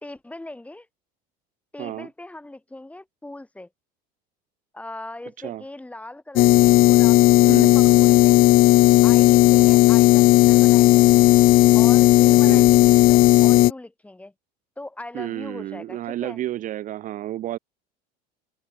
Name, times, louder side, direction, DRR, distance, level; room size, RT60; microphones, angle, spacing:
voice 1, 0.0-0.9 1.7-3.7 4.7-8.4 9.0-11.1 11.7-14.3 14.8-16.4, left 2 dB, 5° left, 3.1 m, -40 dB
voice 2, 1.8-2.1 5.4-5.6 7.4-7.7 12.3-12.7 15.1-17.6, right 13 dB, 40° right, 0.7 m, -31 dB
sound 1, 6.4-13.7, left 17 dB, 50° left, 0.4 m, -14 dB
supercardioid pair, 115°, 20 cm